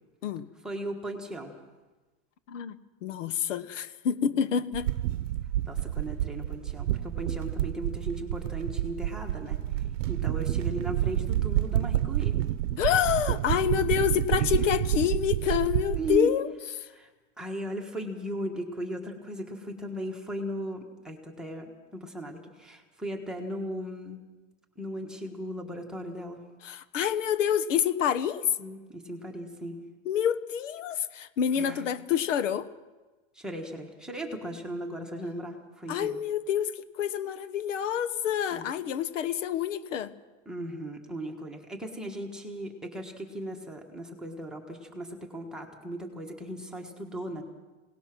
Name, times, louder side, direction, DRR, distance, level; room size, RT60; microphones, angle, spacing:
voice 1, 0.6-1.5 5.7-12.4 14.4-14.5 15.9-16.3 16.9-17.1 17.4-24.2 24.8-26.4 28.6-29.8 31.5-31.8 33.3-36.2 38.5-38.7 40.4-47.4, right 1 dB, ahead, 0 dB, 1.5 m, -37 dB
voice 2, 2.5-4.9 12.8-16.5 16.8-16.9 26.6-28.4 30.0-32.7 35.9-40.1, left 9 dB, 85° left, 13 dB, 1.3 m, -27 dB
sound 1, 4.7-16.2, right 13 dB, 80° right, 0.8 m, -29 dB
26.5 x 18.5 x 6.1 m, 1.2 s
supercardioid pair, 170°, 36 cm